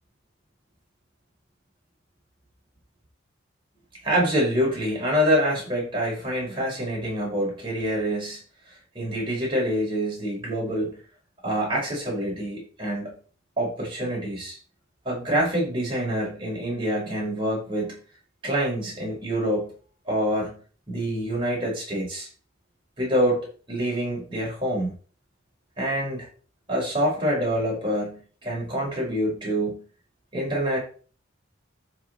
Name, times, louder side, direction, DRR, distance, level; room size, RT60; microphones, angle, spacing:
voice 1, 4.0-8.4 8.9-11.0 11.4-13.1 13.6-14.6 15.0-18.0 18.4-19.7 20.1-20.6 20.9-22.3 23.0-24.9 25.8-26.3 26.7-29.8 30.3-30.8, equal, 25° right, -5 dB, 4.9 m, -26 dB
11.5 x 4.9 x 4.0 m, 0.40 s
head